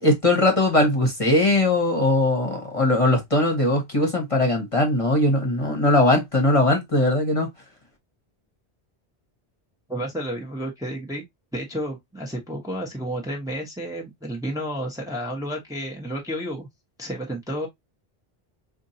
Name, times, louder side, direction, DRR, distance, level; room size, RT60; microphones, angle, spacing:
voice 1, 0.0-7.5, left 1 dB, 30° left, 1.2 m, -20 dB
voice 2, 9.9-11.2 11.5-16.7 17.0-17.7, equal, 5° right, 1.0 m, -31 dB
4.4 x 2.6 x 2.7 m
omnidirectional pair, 1.1 m